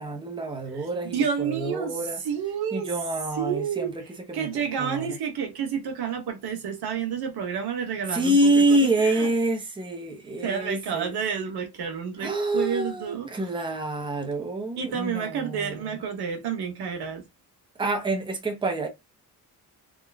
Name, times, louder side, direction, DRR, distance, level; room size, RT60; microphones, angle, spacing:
voice 1, 0.0-2.2 2.7-5.2 8.1-11.2 12.2-16.0 17.8-18.9, right 1 dB, 15° right, 0.8 m, -27 dB
voice 2, 1.0-1.9 2.2-2.9 3.4-3.9 4.3-9.3 10.4-13.3 14.8-17.2, right 7 dB, 90° right, 1.3 m, -30 dB
3.7 x 2.5 x 3.4 m
wide cardioid pair, 155°, 38 cm